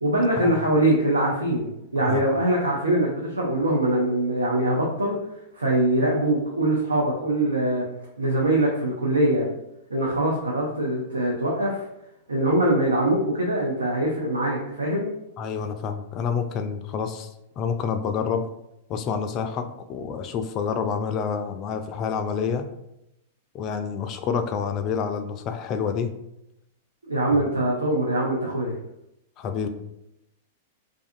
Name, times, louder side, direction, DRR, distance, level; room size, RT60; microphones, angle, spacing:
voice 1, 0.0-5.2 5.6-7.8 8.2-9.5 9.9-11.8 12.3-15.1 27.1-28.7, right 1 dB, 90° right, -3 dB, 0.5 m, -23 dB
voice 2, 15.4-17.3 17.6-18.4 18.9-22.6 23.5-26.1 29.4-29.7, left 6 dB, 40° left, 7 dB, 0.3 m, -28 dB
2.5 x 2.3 x 2.5 m, 0.84 s
hypercardioid pair, 100°, 0 cm